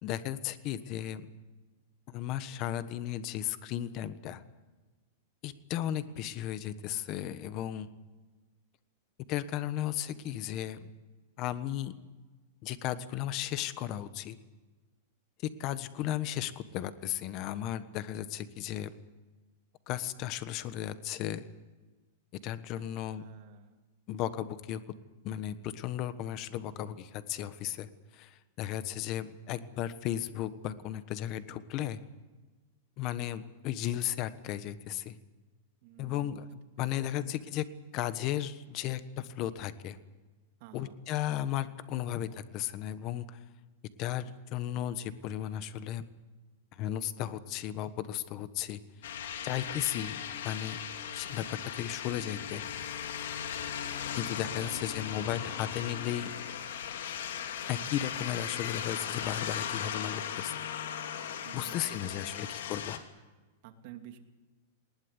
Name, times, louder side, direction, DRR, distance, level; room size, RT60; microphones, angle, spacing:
voice 1, 0.0-1.3 2.1-4.4 5.4-7.9 9.3-10.9 11.4-11.9 12.6-14.4 15.6-18.9 19.9-21.4 22.4-23.3 24.1-24.8 25.2-32.0 33.0-35.1 36.0-36.5 36.8-37.7 37.9-40.0 40.7-43.4 44.0-46.0 46.8-49.1 49.4-50.8 51.1-52.6 54.1-56.3 57.7-60.5 61.5-63.0, left 12 dB, 35° left, 13 dB, 1.3 m, -35 dB
voice 2, 23.1-23.8 35.8-36.5 36.8-36.9 37.2-37.4 40.6-41.0 54.6-55.4 61.4-62.5 63.6-64.2, right 10 dB, 45° right, 5 dB, 2.6 m, -51 dB
sound 1, 49.0-63.0, left 8 dB, 75° left, 2.7 m, -38 dB
20.0 x 19.5 x 9.7 m, 1.2 s
supercardioid pair, 165°, 0 cm